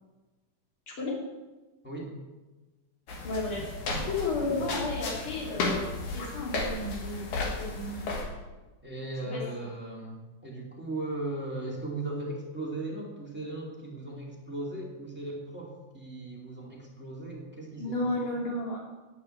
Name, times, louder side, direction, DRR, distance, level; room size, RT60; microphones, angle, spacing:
voice 1, 1.8-2.1 8.8-10.2 10.4-18.0, right 2 dB, 5° right, -3 dB, 1.6 m, -37 dB
sound 1, 3.1-8.3, left 3 dB, 60° left, 3.0 m, -34 dB
voice 2, 3.2-5.8 6.1-8.2 9.3-9.4 17.8-18.8, left 2 dB, 35° left, -4 dB, 3.6 m, -33 dB
9.2 x 7.9 x 8.7 m, 1.2 s
omnidirectional pair, 4.1 m